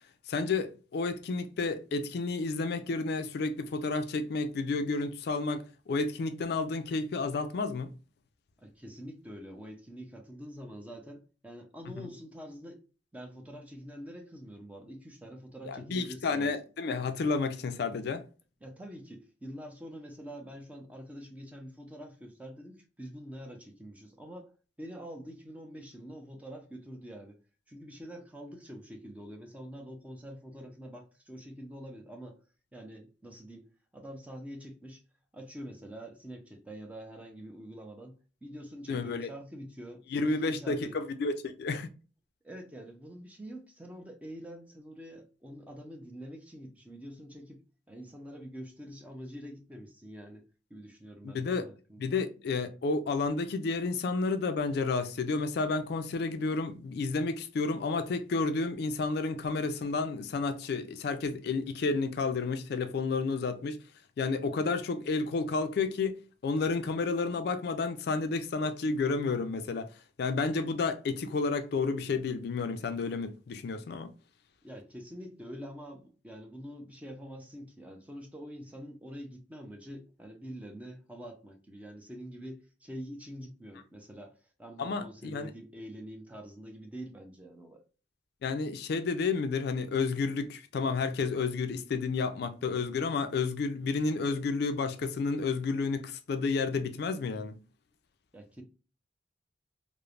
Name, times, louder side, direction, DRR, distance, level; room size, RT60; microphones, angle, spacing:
voice 1, 0.3-7.9 12.0-12.1 15.7-18.2 38.9-39.3 40.1-41.9 51.2-51.6 52.0-63.8 64.2-74.1 84.8-85.5 88.4-97.6, left 4 dB, 60° left, 0.3 m, -31 dB
voice 2, 8.6-12.8 13.1-16.5 18.6-24.5 24.8-27.4 27.7-32.4 32.7-33.7 33.9-35.0 35.3-41.0 42.4-47.6 47.9-52.1 74.6-84.3 84.6-87.8 98.3-98.6, equal, 10° right, 0.5 m, -46 dB
3.1 x 2.0 x 2.4 m
head